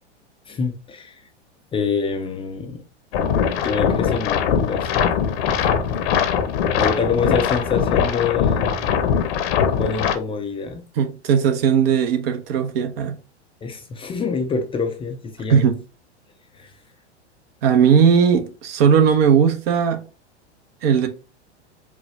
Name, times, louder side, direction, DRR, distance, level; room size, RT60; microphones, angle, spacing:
voice 1, 0.5-1.2 1.7-2.8 3.6-5.1 5.5-5.9 6.8-8.9 9.7-10.8 13.6-15.7 16.5-16.7, left 5 dB, 15° left, 0.5 m, -26 dB
sound 1, 3.1-10.2, left 7 dB, 60° left, 0.8 m, -21 dB
voice 2, 11.0-13.2 15.5-15.8 17.6-20.0 20.8-21.1, right 7 dB, 55° right, 1.0 m, -17 dB
4.9 x 2.3 x 4.2 m
hypercardioid pair, 105°, 35 cm